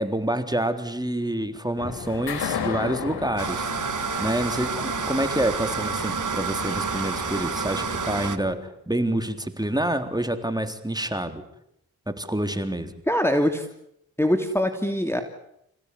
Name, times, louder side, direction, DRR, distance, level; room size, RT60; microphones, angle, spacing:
voice 1, 0.0-3.7 4.2-11.4 12.1-12.9, right 1 dB, 10° right, 8 dB, 3.6 m, -27 dB
sound 1, 1.8-8.6, left 7 dB, 90° left, 2.8 m, -35 dB
sound 2, 3.4-8.4, right 6 dB, 50° right, 1.8 m, -29 dB
voice 2, 13.1-13.6 14.2-15.2, equal, 5° left, 6 dB, 3.0 m, -23 dB
28.0 x 17.0 x 9.9 m, 0.79 s
cardioid pair, 45°, 38 cm